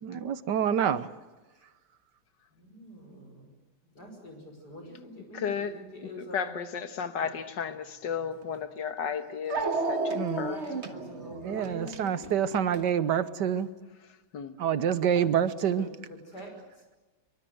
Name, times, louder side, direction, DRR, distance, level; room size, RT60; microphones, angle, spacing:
voice 1, 0.0-1.1 10.1-10.5 11.4-13.7 14.6-15.9, right 8 dB, 80° right, 1.6 m, -27 dB
voice 2, 2.6-3.5 4.0-6.5 7.2-7.3 10.2-12.3 15.2-15.5 15.7-15.9 16.3-16.5, left 1 dB, 65° left, 6.4 m, -45 dB
voice 3, 5.3-5.7 6.0-10.6 14.3-14.5, left 7 dB, 85° left, 2.0 m, -34 dB
Dog, 8.4-8.5 9.5-12.9, right 3 dB, 40° right, 1.6 m, -32 dB
25.0 x 23.5 x 7.9 m
omnidirectional pair, 1.9 m